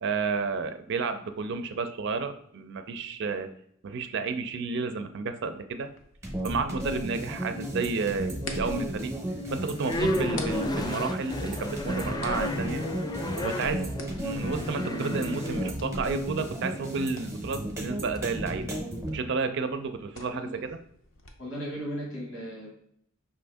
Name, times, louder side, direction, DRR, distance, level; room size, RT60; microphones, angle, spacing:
voice 1, 0.0-3.5 3.8-5.9 6.4-9.2 9.5-12.8 13.4-18.7 19.1-20.8, right 4 dB, 60° right, 9 dB, 0.4 m, -31 dB
sound 1, 5.8-21.3, left 3 dB, 70° left, 0.7 m, -49 dB
sound 2, 6.2-19.1, right 1 dB, 15° right, 0.7 m, -34 dB
sound 3, 7.4-8.2 8.6-19.2, left 1 dB, 20° left, 0.3 m, -35 dB
voice 2, 21.4-22.7, equal, 85° left, -4 dB, 1.5 m, -36 dB
5.4 x 2.6 x 3.4 m, 0.68 s
head